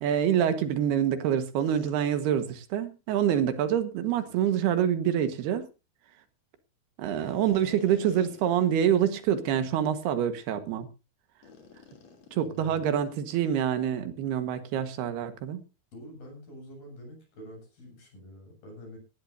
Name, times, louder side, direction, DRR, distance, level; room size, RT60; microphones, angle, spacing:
voice 1, 0.0-5.7 7.0-10.9 12.3-15.6, right 9 dB, 85° right, 10 dB, 3.5 m, -26 dB
sound 1, 1.6-1.9 4.0-4.7 7.2-8.9 9.3-9.4 10.0-10.2 11.4-13.2, left 4 dB, 45° left, 4.0 m, -51 dB
voice 2, 12.4-12.9 15.9-19.0, equal, 65° left, 2 dB, 9.0 m, -46 dB
18.5 x 14.0 x 2.7 m, 0.30 s
omnidirectional pair, 4.5 m